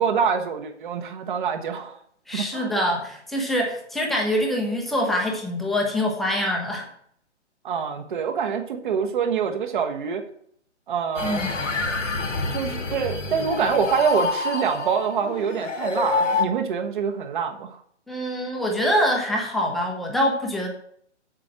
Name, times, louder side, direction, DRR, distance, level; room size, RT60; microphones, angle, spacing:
voice 1, 0.0-2.0 2.3-2.7 7.6-10.2 10.9-11.4 12.5-17.8, right 6 dB, 45° right, 5 dB, 1.4 m, -25 dB
voice 2, 2.3-6.9 11.2-11.6 18.1-20.7, equal, ahead, 0 dB, 0.7 m, -24 dB
sound 1, 11.1-16.4, left 3 dB, 85° left, 1.9 m, -27 dB
7.6 x 7.4 x 5.9 m, 0.65 s
hypercardioid pair, 145°, 36 cm